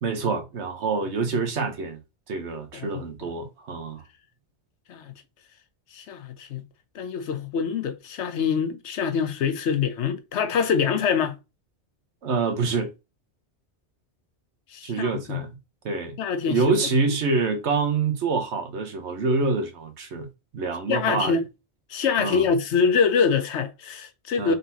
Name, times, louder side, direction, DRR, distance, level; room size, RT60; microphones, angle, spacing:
voice 1, 0.0-2.0 2.3-4.0 12.2-12.9 14.8-15.5 15.8-16.2 16.4-20.3 20.5-21.4 22.2-22.5 24.4-24.6, right 4 dB, 85° right, 1.3 m, -26 dB
voice 2, 2.7-3.3 4.9-5.1 5.9-6.6 6.9-11.4 14.7-15.4 16.2-16.7 20.9-21.4 21.9-24.6, left 6 dB, 80° left, 1.0 m, -25 dB
4.0 x 3.7 x 2.8 m
omnidirectional pair, 1.1 m